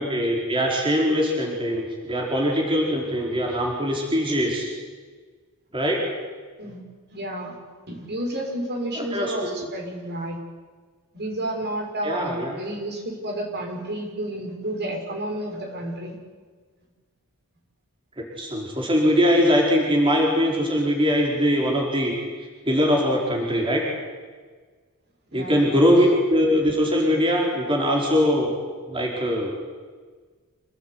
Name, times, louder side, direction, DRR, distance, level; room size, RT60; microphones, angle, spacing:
voice 1, 0.0-4.7 5.7-6.0 9.0-9.7 12.0-12.5 18.2-22.1 22.6-23.8 25.3-28.5 28.9-29.5, equal, 25° right, -1 dB, 4.8 m, -22 dB
voice 2, 7.1-7.6 7.9-10.4 11.1-16.2 18.3-18.4 25.3-25.5 25.8-26.0, right 1 dB, 50° right, 2 dB, 6.2 m, -31 dB
27.5 x 19.0 x 9.7 m, 1.5 s
head